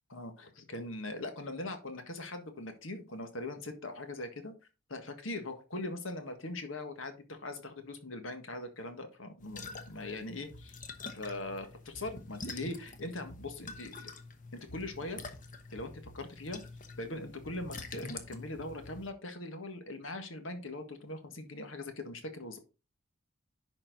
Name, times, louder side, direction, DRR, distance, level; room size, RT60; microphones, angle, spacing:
voice 1, 0.1-4.5 4.9-10.8 11.1-14.1 14.5-15.2 15.7-16.6 17.0-22.6, left 2 dB, 75° left, 7 dB, 1.6 m, -41 dB
sound 1, 9.4-19.1, left 3 dB, 40° left, 1.0 m, -46 dB
10.5 x 4.4 x 4.0 m, 0.31 s
head